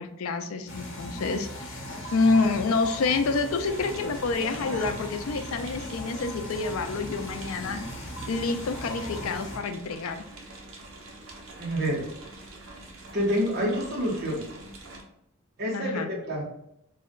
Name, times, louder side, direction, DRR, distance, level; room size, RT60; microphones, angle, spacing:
voice 1, 0.0-1.8 2.1-7.8 8.3-10.2 15.7-16.1, left 4 dB, 80° left, 8 dB, 0.4 m, -28 dB
sound 1, 0.7-9.6, left 1 dB, 65° left, 0.9 m, -38 dB
sound 2, 3.6-15.0, right 2 dB, 75° right, 0.7 m, -46 dB
voice 2, 11.6-12.1 13.1-14.5 15.6-16.0 16.2-16.4, equal, 50° right, -2 dB, 1.1 m, -27 dB
3.3 x 2.2 x 3.7 m, 0.76 s
head